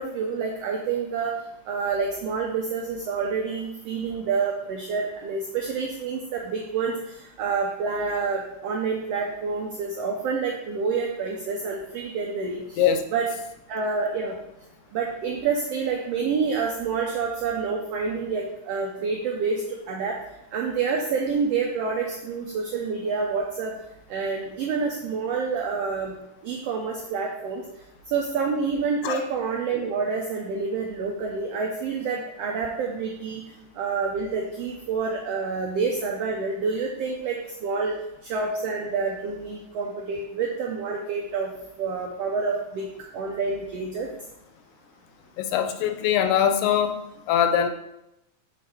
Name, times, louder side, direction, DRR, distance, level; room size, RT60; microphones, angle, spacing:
voice 1, 0.0-1.3 1.7-12.8 13.1-13.3 13.7-14.4 14.9-20.2 20.5-23.7 24.1-26.2 26.4-27.6 28.1-33.4 33.7-38.0 38.2-41.5 41.8-42.9 43.1-44.1, right 5 dB, 90° right, 0 dB, 1.4 m, -28 dB
voice 2, 45.4-46.9 47.3-47.7, left 9 dB, 80° left, 8 dB, 2.0 m, -22 dB
6.2 x 3.9 x 4.3 m, 0.86 s
omnidirectional pair, 3.6 m